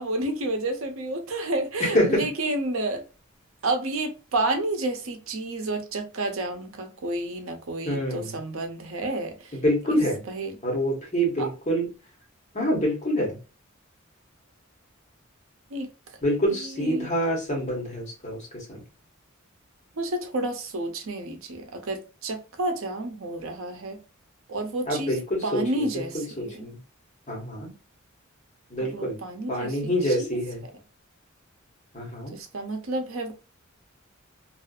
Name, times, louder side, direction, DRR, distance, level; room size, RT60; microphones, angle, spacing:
voice 1, 0.0-3.0 3.6-9.3 10.3-10.5 11.4-11.5 15.7-15.9 16.8-17.1 20.0-24.0 24.5-25.1 25.4-26.7 28.9-29.7 30.2-30.3 32.3-33.3, right 2 dB, 70° right, 0.6 m, -30 dB
voice 2, 1.8-2.3 7.9-8.4 9.5-10.2 10.6-11.9 12.5-13.4 16.2-18.8 24.9-26.8 27.3-27.7 28.7-29.2 29.5-30.6 31.9-32.4, equal, 35° left, 1.2 m, -26 dB
2.6 x 2.4 x 2.3 m
head